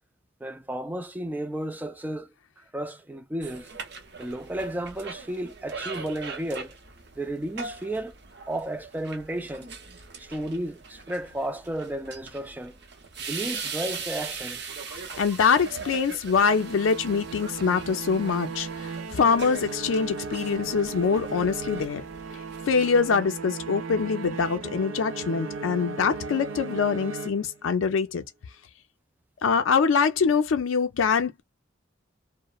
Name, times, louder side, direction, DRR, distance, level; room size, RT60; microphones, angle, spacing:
voice 1, 0.4-2.3 2.7-3.7 4.2-6.7 7.2-8.1 8.5-9.7 10.2-12.8 13.2-15.2, right 1 dB, 10° right, 0.3 m, -33 dB
sound 1, 3.4-23.1, right 5 dB, 55° right, 0.7 m, -41 dB
voice 2, 14.9-22.0 22.7-28.2 29.4-31.4, left 5 dB, 85° left, 0.4 m, -24 dB
sound 2, 16.4-27.9, right 4 dB, 90° right, 0.5 m, -36 dB
2.9 x 2.0 x 2.2 m
head